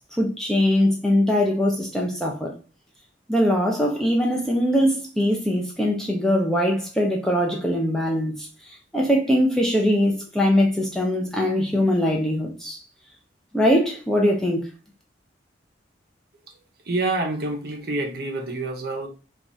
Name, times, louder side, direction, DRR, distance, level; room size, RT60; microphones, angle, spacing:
voice 1, 0.0-2.5 3.3-8.5 8.9-12.8 13.5-14.6, equal, ahead, 0.4 m, -21 dB
voice 2, 16.8-19.1, right 2 dB, 55° right, 0.7 m, -27 dB
3.0 x 2.3 x 2.5 m
head